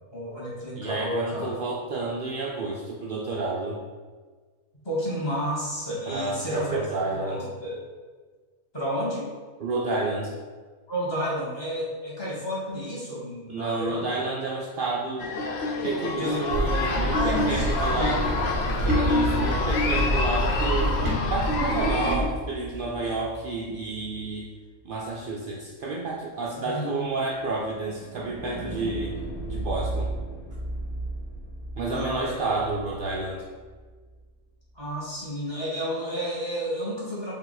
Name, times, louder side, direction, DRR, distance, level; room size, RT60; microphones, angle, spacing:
voice 1, 0.1-1.5 4.8-6.8 7.3-7.8 8.7-9.3 10.9-14.2 16.2-16.4 17.1-18.1 26.6-27.0 31.9-32.7 34.7-37.3, equal, 20° left, -8 dB, 1.3 m, -31 dB
voice 2, 0.8-3.8 6.1-7.5 9.6-10.3 13.5-15.3 15.8-18.2 18.8-24.5 24.8-29.2 29.5-30.1 31.8-33.5, right 3 dB, 80° right, -3 dB, 0.4 m, -30 dB
sound 1, 15.2-22.2, left 2 dB, 65° left, 0.6 m, -27 dB
sound 2, 16.5-22.2, equal, 45° right, 0.8 m, -27 dB
sound 3, 22.2-24.3 26.2-34.2, right 2 dB, 85° left, 1.2 m, -37 dB
4.6 x 2.8 x 3.9 m, 1.5 s
omnidirectional pair, 1.5 m